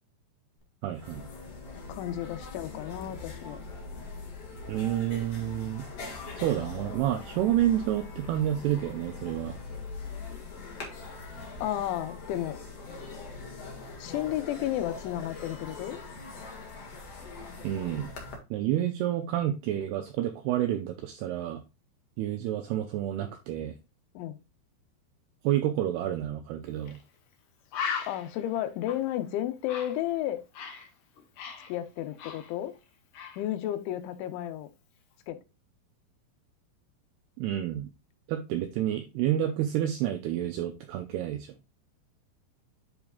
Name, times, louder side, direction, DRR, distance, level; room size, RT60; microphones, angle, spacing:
sound 1, 0.6-0.7 0.9-18.4, left 3 dB, 45° left, 2.3 m, -42 dB
voice 1, 0.8-1.2 4.7-5.9 6.4-9.6 17.6-18.1 18.5-21.6 22.2-23.7 25.4-27.0 37.4-37.9 38.3-41.6, right 12 dB, 80° right, 2.4 m, -29 dB
voice 2, 1.9-3.6 11.6-12.6 14.0-16.0 24.1-24.4 28.1-30.4 31.7-32.7 33.4-34.7 35.3-35.4, left 12 dB, 85° left, 3.3 m, -32 dB
Bird, 26.9-27.0 27.3-27.4 27.7-30.9 31.2-32.8 33.1-33.4, left 6 dB, 60° left, 2.3 m, -38 dB
10.5 x 4.9 x 2.3 m
omnidirectional pair, 5.3 m